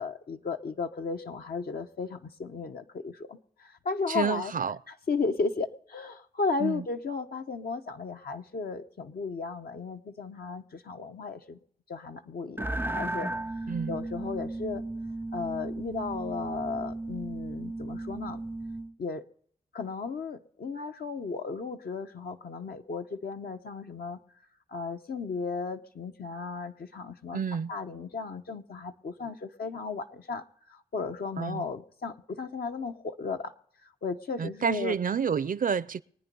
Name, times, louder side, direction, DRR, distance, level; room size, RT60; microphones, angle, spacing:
voice 1, 0.0-4.5 4.9-11.6 11.9-14.8 15.3-18.4 19.0-19.2 19.7-24.2 24.7-27.4 27.7-30.4 30.7-33.5 34.0-35.0, left 4 dB, 75° left, 0.9 m, -35 dB
voice 2, 4.1-4.8 6.6-6.8 13.7-14.0 27.3-27.7 31.4-31.7 34.4-36.0, right 6 dB, 60° right, 0.5 m, -29 dB
sound 1, 12.6-18.9, right 2 dB, 15° right, 0.5 m, -35 dB
22.5 x 9.4 x 5.4 m
cardioid pair, 50°, 16 cm